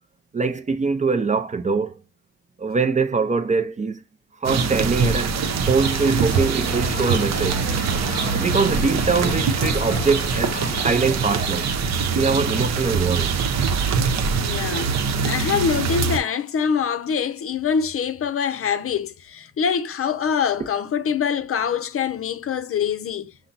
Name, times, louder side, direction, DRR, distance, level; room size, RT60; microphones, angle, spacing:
voice 1, 0.3-2.0 2.6-4.0 4.4-5.4 5.7-7.7 8.4-10.5 10.8-11.7 12.1-13.3, right 4 dB, 25° right, 0.6 m, -23 dB
sound 1, 4.4-16.2, right 5 dB, 60° right, 0.8 m, -23 dB
sound 2, 5.8-10.9, left 4 dB, 30° left, 0.9 m, -34 dB
voice 2, 14.3-15.0 15.2-23.3, left 7 dB, 50° left, 0.6 m, -24 dB
5.6 x 2.2 x 4.0 m
cardioid pair, 90°, 30 cm